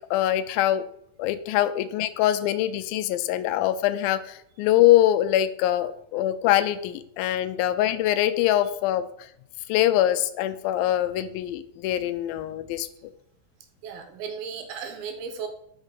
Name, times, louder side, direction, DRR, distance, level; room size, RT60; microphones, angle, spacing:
voice 1, 0.1-0.8 1.2-9.3 9.7-12.9, left 13 dB, 85° left, 12 dB, 2.3 m, -23 dB
voice 2, 13.8-15.5, right 6 dB, 90° right, 6 dB, 2.9 m, -35 dB
6.4 x 5.0 x 5.1 m, 0.72 s
omnidirectional pair, 4.2 m